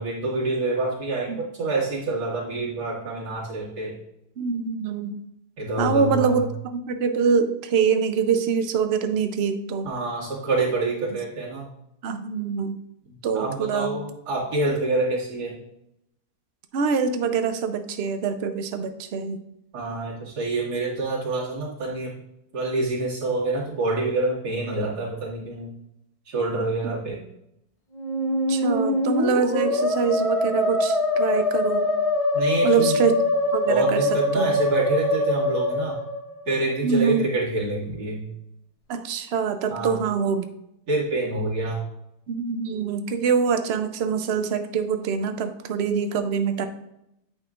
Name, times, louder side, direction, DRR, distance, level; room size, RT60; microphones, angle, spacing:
voice 1, 0.0-4.0 5.6-6.3 9.8-11.7 13.1-15.6 19.7-22.1 22.5-25.7 26.3-27.2 32.3-33.0 33.7-36.0 36.5-38.3 39.7-40.0 40.9-41.8, right 2 dB, 90° right, -5 dB, 2.5 m, -27 dB
voice 2, 4.4-5.2 5.8-6.4 6.7-9.9 12.0-12.8 13.2-13.9 16.7-19.4 28.5-31.9 32.6-33.2 33.5-34.1 34.3-34.5 36.8-37.2 38.9-40.5 42.3-46.7, right 6 dB, 60° right, 8 dB, 0.7 m, -24 dB
Musical instrument, 27.9-36.7, left 2 dB, 30° left, 0.7 m, -23 dB
8.8 x 5.6 x 2.4 m, 0.82 s
omnidirectional pair, 1.7 m